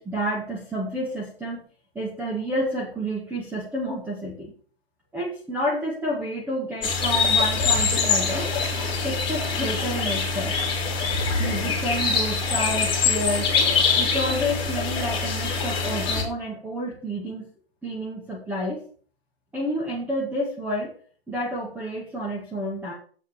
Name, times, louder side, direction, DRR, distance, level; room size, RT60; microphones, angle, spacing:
voice 1, 0.0-1.6 1.9-4.5 5.1-8.5 9.0-10.5 11.4-13.5 14.0-17.5 17.8-18.8 19.5-20.9 21.3-22.9, equal, 5° right, -4 dB, 2.0 m, -29 dB
sound 1, 6.8-16.2, left 5 dB, 15° left, 3.4 m, -24 dB
8.0 x 6.4 x 6.9 m, 0.44 s
hypercardioid pair, 150°, 30 cm